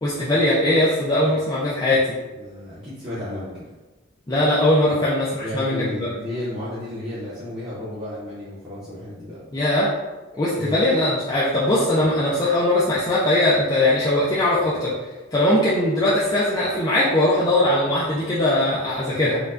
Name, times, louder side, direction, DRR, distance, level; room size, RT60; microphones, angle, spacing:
voice 1, 0.0-2.0 4.3-6.1 9.5-9.9 10.4-14.9 15.3-19.4, left 1 dB, 20° left, -8 dB, 0.4 m, -20 dB
voice 2, 2.3-3.6 4.9-9.4 10.5-10.8, left 1 dB, 25° right, -11 dB, 0.8 m, -33 dB
4.4 x 2.2 x 2.5 m, 1.2 s
head